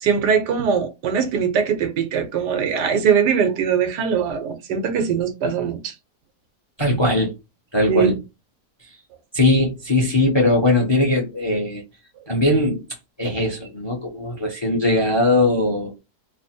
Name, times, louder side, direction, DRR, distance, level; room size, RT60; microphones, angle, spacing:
voice 1, 0.0-5.9 7.9-8.2, right 7 dB, 85° right, 1.4 m, -21 dB
voice 2, 6.8-7.3 7.7-8.2 9.3-11.8 12.3-12.8 13.2-15.9, left 1 dB, 25° left, 0.7 m, -19 dB
3.3 x 2.0 x 4.2 m
omnidirectional pair, 1.7 m